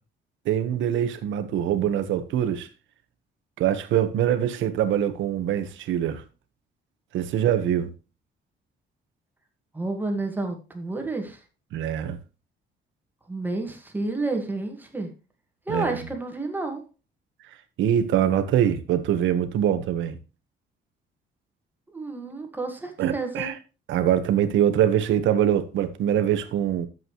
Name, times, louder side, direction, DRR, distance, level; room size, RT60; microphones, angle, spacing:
voice 1, 0.4-2.7 3.6-6.2 7.1-7.9 11.7-12.2 15.7-16.0 17.8-20.2 23.0-23.5 23.9-26.9, right 10 dB, 85° right, 1.4 m, -23 dB
voice 2, 9.7-11.4 13.3-15.1 15.7-16.8 21.9-23.5, right 2 dB, 10° right, 1.8 m, -30 dB
12.0 x 7.7 x 3.1 m
cardioid pair, 170°, 19 cm